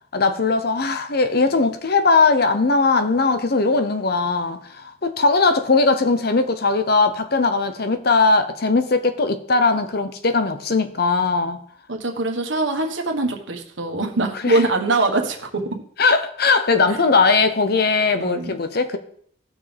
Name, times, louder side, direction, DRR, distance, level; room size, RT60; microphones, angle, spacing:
voice 1, 0.1-11.6 14.3-14.6 16.0-19.0, left 3 dB, 50° left, 0.8 m, -19 dB
voice 2, 11.9-15.6 18.2-18.5, right 2 dB, 70° right, 1.5 m, -23 dB
17.0 x 6.2 x 3.4 m
head